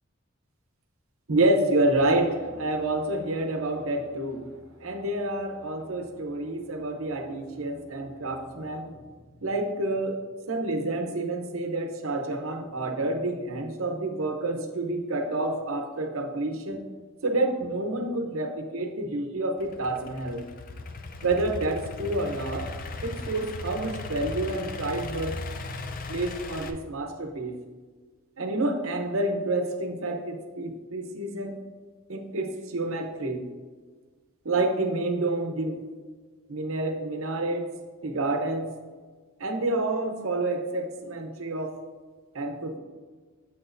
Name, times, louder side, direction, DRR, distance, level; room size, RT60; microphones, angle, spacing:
voice 1, 1.3-9.0 9.4-10.2 10.5-16.8 17.2-20.4 21.2-22.7 23.0-25.4 26.1-27.6 28.4-31.6 32.1-33.5 34.4-35.8 36.5-37.7 38.0-38.7 39.4-41.8 42.3-42.8, right 2 dB, 70° right, 5 dB, 0.8 m, -28 dB
Idling / Accelerating revving vroom, 19.6-26.7, left 3 dB, 40° left, 0.4 m, -37 dB
7.4 x 6.3 x 2.6 m, 1.4 s
head